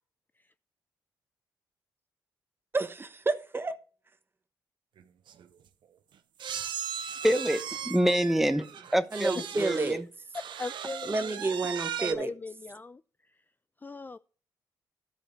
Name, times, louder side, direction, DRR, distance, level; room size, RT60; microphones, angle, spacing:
voice 1, 2.7-3.7 9.1-10.1 11.1-12.3, right 3 dB, 25° right, 1.1 m, -30 dB
sound 1, 5.0-5.1 5.3-5.5 6.4-10.0 10.3-12.1, right 8 dB, 70° right, 0.9 m, -37 dB
voice 2, 7.2-10.0, equal, 5° right, 0.9 m, -26 dB
voice 3, 10.6-11.3 12.0-13.0 13.8-14.2, left 4 dB, 20° left, 0.3 m, -40 dB
12.0 x 5.2 x 4.5 m
cardioid pair, 65°, 8 cm